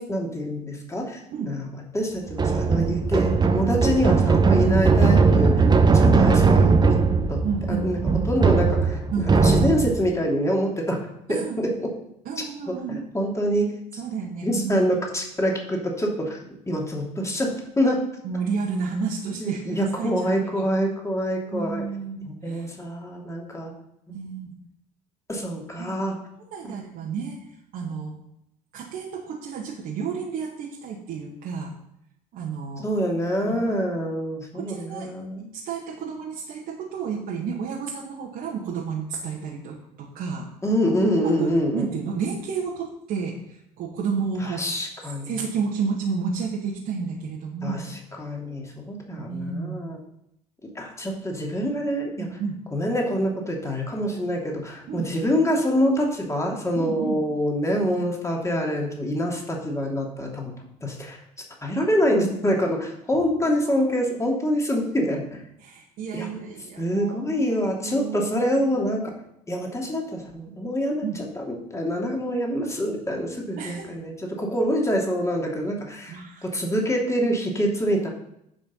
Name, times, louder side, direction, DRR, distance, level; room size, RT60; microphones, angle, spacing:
voice 1, 0.0-1.7 1.9-6.9 7.3-11.9 12.7-13.7 14.4-16.4 16.7-17.5 17.8-18.0 19.4-21.8 22.2-23.7 25.3-26.1 26.6-26.8 32.8-35.5 40.6-41.9 44.4-45.3 47.6-50.0 50.7-52.3 52.7-60.5 60.8-61.2 61.6-65.4 66.1-66.3 66.8-69.1 69.5-78.1, equal, 15° left, 0 dB, 2.8 m, -26 dB
sound 1, 2.3-10.1, right 4 dB, 20° right, 1.0 m, -19 dB
voice 2, 7.4-8.1 9.1-9.4 11.3-11.6 12.3-13.0 14.0-14.9 18.2-20.7 21.4-22.7 24.1-24.5 25.8-26.0 26.5-27.4 27.7-28.1 28.7-31.7 32.3-32.9 33.4-33.6 34.5-35.1 35.5-40.5 40.9-44.6 45.3-47.9 49.2-49.8 52.2-52.6 54.1-54.3 54.9-55.1 56.8-57.2 63.4-63.9 65.6-68.3 71.0-71.2 73.6-73.9 76.1-76.5, right 5 dB, 50° right, -4 dB, 1.9 m, -31 dB
10.5 x 5.5 x 5.5 m, 0.79 s
figure-of-eight pair, 60°, 19 cm